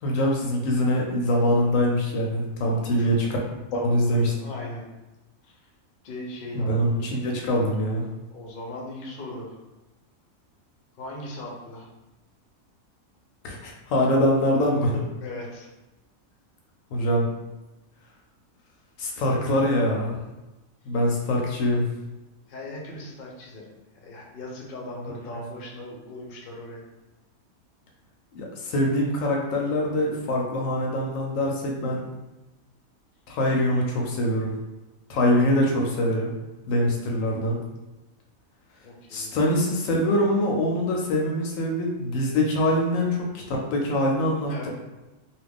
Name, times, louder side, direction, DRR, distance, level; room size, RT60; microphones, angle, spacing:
voice 1, 0.0-3.3 3.7-4.3 6.5-8.1 13.4-15.0 16.9-17.3 19.0-20.2 20.9-21.9 28.3-32.0 33.3-34.5 35.1-36.3 36.7-37.6 39.1-44.7, equal, 75° left, -1 dB, 0.9 m, -24 dB
voice 2, 2.6-3.2 3.7-4.8 5.4-5.6 6.0-6.9 8.3-9.6 10.9-11.9 15.2-15.7 22.5-23.7 23.9-26.8 29.3-29.4 38.8-39.4 44.4-44.7, left 1 dB, 50° left, -2 dB, 0.7 m, -38 dB
2.7 x 2.4 x 3.4 m, 1.0 s
omnidirectional pair, 1.4 m